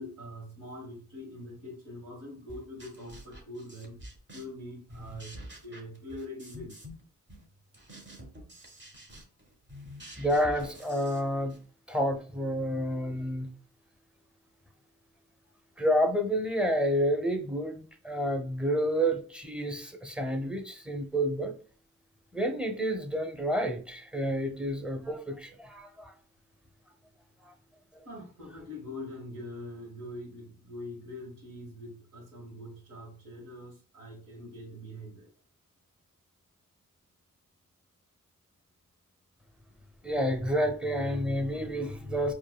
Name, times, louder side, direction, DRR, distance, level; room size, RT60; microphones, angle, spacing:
voice 1, 0.0-4.0 4.3-6.8 28.0-35.3, left 1 dB, 80° right, -1 dB, 1.4 m, -43 dB
sound 1, 2.5-4.6 4.9-7.0 7.3-11.6, equal, 35° right, 1.3 m, -48 dB
voice 2, 10.2-11.6 11.9-13.5 15.8-17.7 18.0-21.6 22.3-26.1 27.5-27.6 27.9-28.0 40.0-42.3, equal, 5° right, 5 dB, 0.8 m, -29 dB
4.5 x 2.4 x 2.2 m, 0.42 s
supercardioid pair, 50°, 32 cm